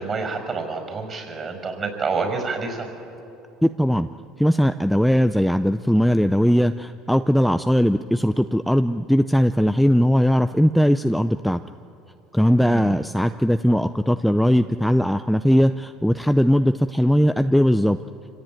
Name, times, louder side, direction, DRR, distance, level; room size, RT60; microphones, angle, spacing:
voice 1, 0.0-2.9 12.6-12.9, right 4 dB, 35° right, 5 dB, 5.7 m, -28 dB
voice 2, 3.6-4.1 4.4-11.6 12.3-18.0, equal, ahead, 9 dB, 0.5 m, -19 dB
26.5 x 16.5 x 9.1 m, 3.0 s
supercardioid pair, 110°, 0 cm